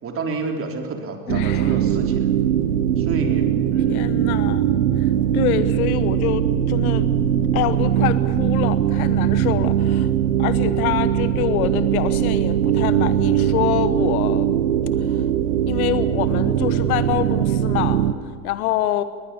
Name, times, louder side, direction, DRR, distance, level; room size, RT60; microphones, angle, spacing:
voice 1, 0.0-2.3 3.0-4.3, right 4 dB, 30° right, 3 dB, 3.8 m, -29 dB
voice 2, 1.3-1.8 3.9-7.1 7.5-10.1 10.4-14.6 15.0-15.3 15.6-19.0, left 12 dB, 70° left, 13 dB, 1.2 m, -26 dB
sound 1, 1.3-18.1, right 10 dB, 75° right, 1.3 m, -20 dB
sound 2, 2.5-8.7 9.1-9.3, left 3 dB, 25° left, 5.5 m, -40 dB
22.0 x 20.0 x 7.0 m, 2.2 s
hypercardioid pair, 105°, 45 cm